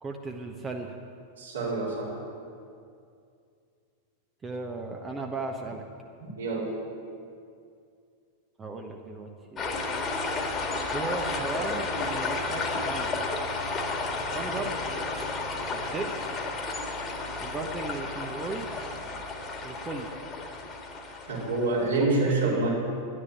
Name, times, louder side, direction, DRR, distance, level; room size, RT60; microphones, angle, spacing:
voice 1, 0.0-1.0 4.4-5.8 8.6-9.8 10.9-13.1 14.3-14.7 15.7-16.1 17.4-18.7 19.6-20.1 22.0-22.7, right 3 dB, 20° right, 2 dB, 1.1 m, -36 dB
voice 2, 1.4-2.1 6.4-6.7 21.3-22.7, right 2 dB, 65° right, -5 dB, 4.4 m, -26 dB
sound 1, 9.6-22.0, left 3 dB, 25° left, 1.9 m, -32 dB
11.0 x 9.9 x 9.1 m, 2.4 s
figure-of-eight pair, 90°, 0 cm